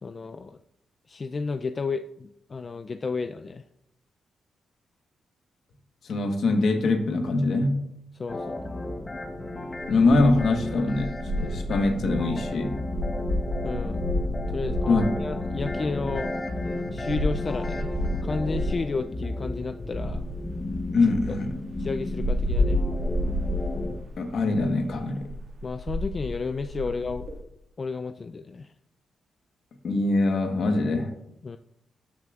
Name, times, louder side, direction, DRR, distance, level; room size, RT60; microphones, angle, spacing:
voice 1, 0.0-0.6 1.1-3.6 8.1-8.7 13.6-14.0 14.5-16.3 16.9-17.9 18.2-20.3 21.3-21.4 21.8-22.8 25.6-27.3 27.8-28.7 31.4-31.6, left 4 dB, 40° left, 8 dB, 0.3 m, -32 dB
voice 2, 6.0-7.8 9.9-12.7 14.9-15.1 20.9-21.6 24.2-25.3 29.8-31.1, left 2 dB, 70° left, 5 dB, 1.1 m, -23 dB
sound 1, 8.3-24.0, left 2 dB, 25° left, 0.8 m, -33 dB
sound 2, 9.8-19.0 19.8-27.4, left 1 dB, 60° right, 1.7 m, -31 dB
12.5 x 5.9 x 2.4 m, 0.78 s
cardioid pair, 75°, 0 cm